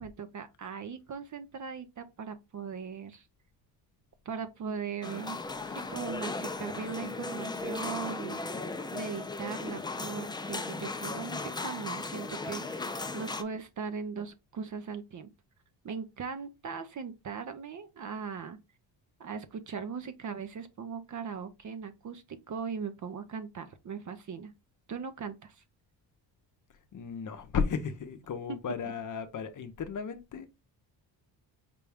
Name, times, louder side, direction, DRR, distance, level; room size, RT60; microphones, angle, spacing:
voice 1, 0.0-3.3 4.3-15.3 15.8-18.6 19.2-24.5 24.9-25.6, right 6 dB, 40° right, 0.6 m, -39 dB
sound 1, 5.0-13.4, left 3 dB, 10° left, 0.3 m, -37 dB
voice 2, 26.9-30.5, left 6 dB, 45° left, 0.7 m, -34 dB
5.2 x 2.2 x 3.4 m
cardioid pair, 100°, 45 cm